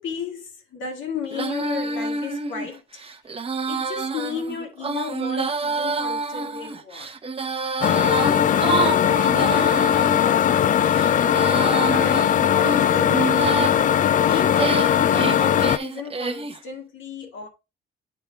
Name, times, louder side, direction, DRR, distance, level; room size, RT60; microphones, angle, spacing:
voice 1, 0.0-2.8 3.7-7.1 8.2-10.9 11.7-13.2 14.0-17.5, left 5 dB, 75° left, 2.0 m, -34 dB
Female singing, 1.3-10.2 10.8-13.8 14.3-16.6, right 4 dB, 30° right, 0.8 m, -28 dB
sound 1, 7.8-15.8, left 9 dB, 40° left, 0.4 m, -19 dB
8.6 x 3.6 x 3.3 m
cardioid pair, 90°, 20 cm